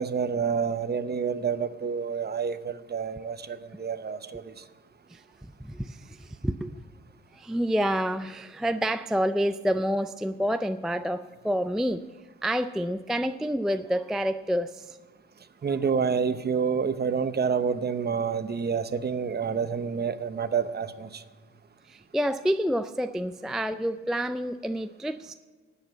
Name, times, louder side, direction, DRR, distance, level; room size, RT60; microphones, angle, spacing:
voice 1, 0.0-4.5 15.6-21.2, right 6 dB, 35° right, 11 dB, 0.8 m, -28 dB
voice 2, 5.1-6.8 7.3-12.0 12.4-15.0 21.9-25.3, equal, ahead, 10 dB, 0.3 m, -28 dB
12.0 x 8.5 x 8.0 m, 1.4 s
cardioid pair, 90°, 30 cm